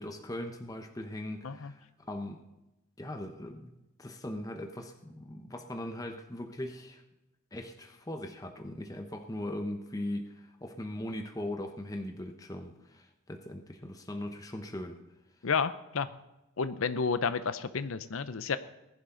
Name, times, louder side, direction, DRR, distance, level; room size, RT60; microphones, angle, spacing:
voice 1, 0.0-2.4 3.0-7.0 7.5-15.0, left 1 dB, 15° left, 5 dB, 1.0 m, -40 dB
voice 2, 15.4-16.1 16.6-18.6, left 5 dB, 75° left, 13 dB, 0.6 m, -31 dB
19.5 x 11.0 x 3.9 m, 0.97 s
head